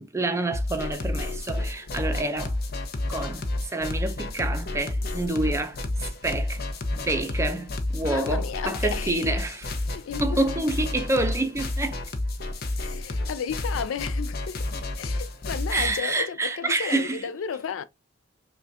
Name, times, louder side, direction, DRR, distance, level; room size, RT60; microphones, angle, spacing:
voice 1, 0.0-2.5 3.1-6.6 6.9-9.7 10.2-12.0 15.7-17.2, right 2 dB, 15° right, 0.5 m, -28 dB
sound 1, 0.5-16.0, left 2 dB, 55° left, 0.7 m, -30 dB
voice 2, 8.1-9.3 9.8-10.5 12.8-14.7 15.0-17.8, left 7 dB, 85° left, 0.4 m, -33 dB
5.5 x 2.3 x 2.6 m
head